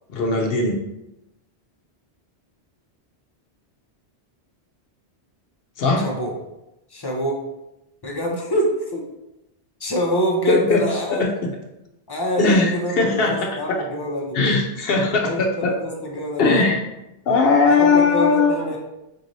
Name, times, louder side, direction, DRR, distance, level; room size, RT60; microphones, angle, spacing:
voice 1, 0.1-0.8 5.8-6.1 10.5-10.8 11.2-11.3 12.4-13.8 14.3-15.7 16.4-16.8 17.3-18.6, left 3 dB, 65° left, 1 dB, 0.8 m, -19 dB
voice 2, 6.0-6.3 6.9-7.4 8.0-9.0 9.8-11.3 12.1-12.5 12.7-14.4 15.2-16.7 17.7-18.8, equal, 30° left, -1 dB, 0.5 m, -25 dB
4.5 x 3.0 x 2.6 m, 0.92 s
omnidirectional pair, 1.1 m